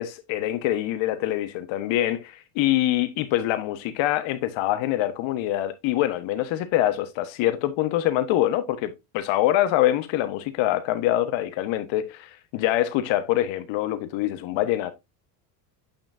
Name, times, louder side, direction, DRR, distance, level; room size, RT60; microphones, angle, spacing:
voice 1, 0.0-14.9, left 13 dB, 70° left, 1.4 m, -25 dB
8.8 x 5.7 x 2.7 m
supercardioid pair, 95°, 48 cm